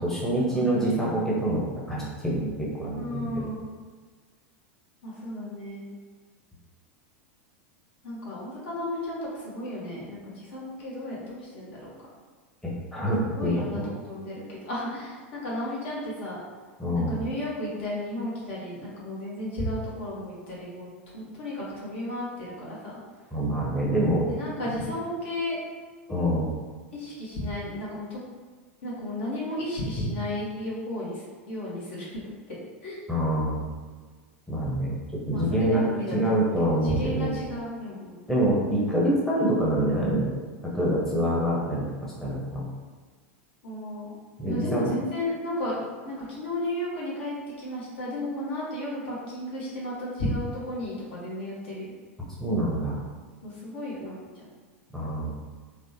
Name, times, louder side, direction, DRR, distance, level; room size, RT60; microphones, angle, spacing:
voice 1, 0.0-3.5 12.6-13.9 16.8-17.2 23.3-24.3 26.1-26.5 33.1-33.7 34.5-35.0 35.3-37.3 38.3-41.8 42.2-42.7 44.4-44.9 52.4-53.0 54.9-55.3, right 1 dB, 5° left, -7 dB, 0.8 m, -26 dB
voice 2, 0.5-0.9 2.9-3.7 5.0-5.8 8.0-11.9 13.0-16.4 16.9-23.0 24.3-25.6 26.1-26.4 26.9-28.2 28.8-32.2 32.5-33.0 35.3-36.5 36.8-38.2 43.6-44.1 44.5-45.7 46.0-51.9 53.4-54.4, left 1 dB, 65° left, -6 dB, 1.1 m, -33 dB
3.2 x 2.1 x 2.7 m, 1.5 s
figure-of-eight pair, 90°, 7 cm